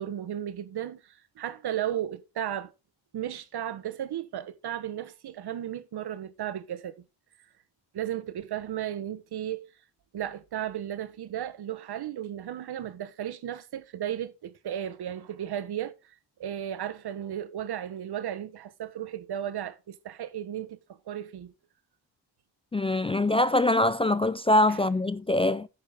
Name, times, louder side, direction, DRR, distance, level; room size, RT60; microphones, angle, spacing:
voice 1, 0.0-2.7 3.1-7.0 7.9-9.7 10.1-21.5 24.7-24.8, right 11 dB, 65° right, 1.2 m, -35 dB
voice 2, 22.7-25.7, left 1 dB, 15° left, 0.4 m, -23 dB
10.5 x 8.7 x 3.6 m
cardioid pair, 90°, 42 cm